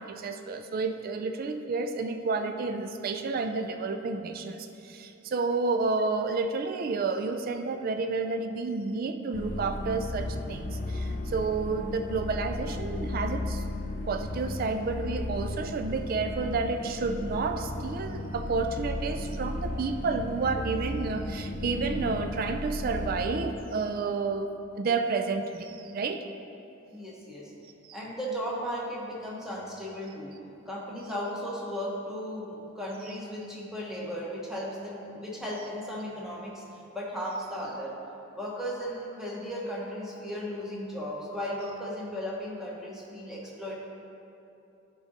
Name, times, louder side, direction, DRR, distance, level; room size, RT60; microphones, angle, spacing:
voice 1, 0.0-13.6 14.1-24.5 24.8-26.3 27.8-28.0, right 4 dB, 45° right, 7 dB, 0.3 m, -30 dB
sound 1, 9.3-23.5, left 2 dB, 45° left, 0.4 m, -35 dB
voice 2, 26.9-27.5 27.9-30.3 30.7-36.6 36.9-38.0 38.3-43.8, equal, 5° right, -5 dB, 1.1 m, -36 dB
10.5 x 3.8 x 4.1 m, 2.8 s
head